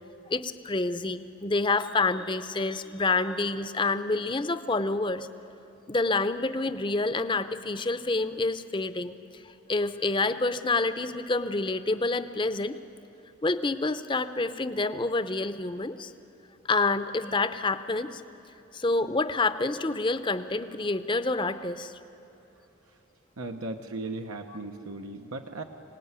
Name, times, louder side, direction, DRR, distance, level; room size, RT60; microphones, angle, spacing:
voice 1, 0.3-5.3 5.9-9.2 9.7-12.7 13.4-16.1 16.7-18.2 18.7-21.9, left 3 dB, 20° left, 11 dB, 0.6 m, -28 dB
voice 2, 23.4-25.6, right 2 dB, 90° right, 4 dB, 1.1 m, -37 dB
25.5 x 18.0 x 9.6 m, 3.0 s
head